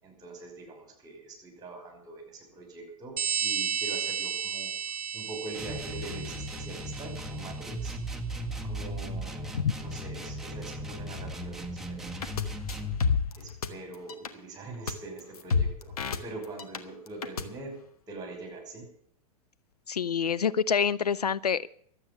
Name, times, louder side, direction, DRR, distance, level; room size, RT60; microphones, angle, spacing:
voice 1, 0.0-4.7 5.1-8.0 8.6-12.1 13.4-15.9 16.2-17.8 18.1-18.9, right 3 dB, 20° right, 4 dB, 5.8 m, -43 dB
sound 1, 3.2-7.4, right 7 dB, 80° right, 0.6 m, -33 dB
sound 2, 5.5-13.0, equal, ahead, 1.6 m, -37 dB
sound 3, 12.2-12.4 12.7-13.7 13.9-14.3 14.9-15.0 15.2-16.8 17.1-17.4, left 5 dB, 75° left, 1.4 m, -28 dB
voice 2, 19.9-21.7, left 7 dB, 90° left, 18 dB, 0.5 m, -27 dB
12.5 x 8.5 x 9.5 m, 0.64 s
hypercardioid pair, 105°, 19 cm